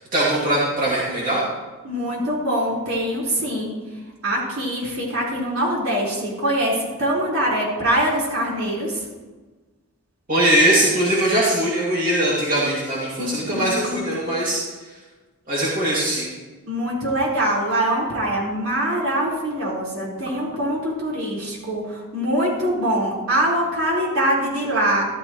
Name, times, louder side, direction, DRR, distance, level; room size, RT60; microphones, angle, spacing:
voice 1, 0.0-1.4 10.3-14.6 15.5-16.3, right 1 dB, 40° right, -6 dB, 2.5 m, -21 dB
voice 2, 1.8-3.7 4.2-9.0 13.2-14.0 16.7-25.1, right 1 dB, 75° right, -5 dB, 4.5 m, -23 dB
14.5 x 12.5 x 3.1 m, 1.3 s
head